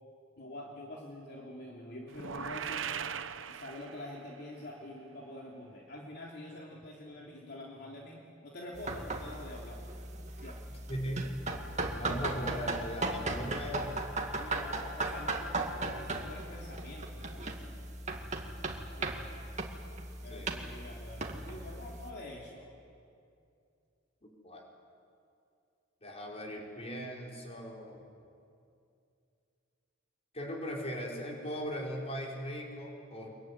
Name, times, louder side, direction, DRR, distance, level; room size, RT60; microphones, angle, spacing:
voice 1, 0.4-2.9 3.5-9.8 10.4-10.6 12.2-12.4 14.4-17.8 19.0-19.3 20.2-22.6, left 1 dB, 60° left, -2 dB, 3.3 m, -46 dB
sound 1, 2.1-4.3, right 7 dB, 75° right, 0.9 m, -39 dB
sound 2, 8.7-22.1, right 2 dB, 40° right, 2.2 m, -37 dB
voice 2, 10.7-11.4 11.9-14.1 20.3-20.5 24.2-24.6 26.0-28.0 30.3-33.3, equal, 35° left, -1 dB, 5.1 m, -39 dB
24.5 x 22.5 x 9.9 m, 2.5 s
head